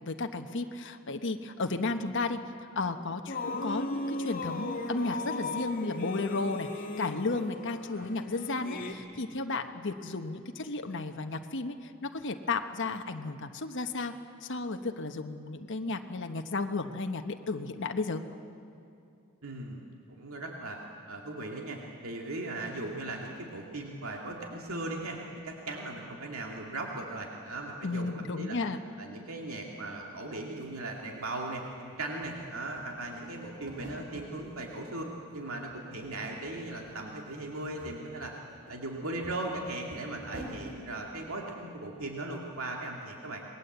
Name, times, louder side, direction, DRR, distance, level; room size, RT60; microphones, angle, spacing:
voice 1, 0.0-2.4 2.7-14.1 14.4-18.2 27.8-28.8, left 3 dB, 60° left, 6 dB, 1.1 m, -33 dB
sound 1, 3.3-8.9, left 2 dB, 45° left, 2.6 m, -37 dB
voice 2, 19.4-19.8 20.1-20.8 21.1-25.2 25.4-28.6 29.0-38.3 38.7-43.4, right 2 dB, 85° right, 0 dB, 2.4 m, -38 dB
sound 2, 30.3-30.4 30.6-31.8 32.1-34.3 34.7-35.4 35.7-36.6 36.8-37.0 37.5-40.8, right 1 dB, 50° right, 4.3 m, -48 dB
27.5 x 20.5 x 8.1 m, 2.6 s
head